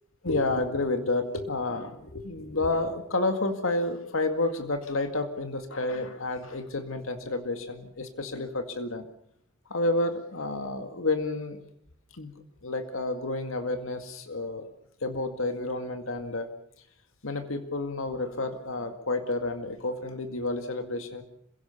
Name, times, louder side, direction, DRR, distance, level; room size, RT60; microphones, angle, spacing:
voice 1, 0.2-9.1 9.7-11.6 12.1-12.3 12.6-14.7 15.0-16.5 17.2-21.2, left 2 dB, 80° left, 7 dB, 2.0 m, -30 dB
27.0 x 17.0 x 7.0 m, 0.72 s
head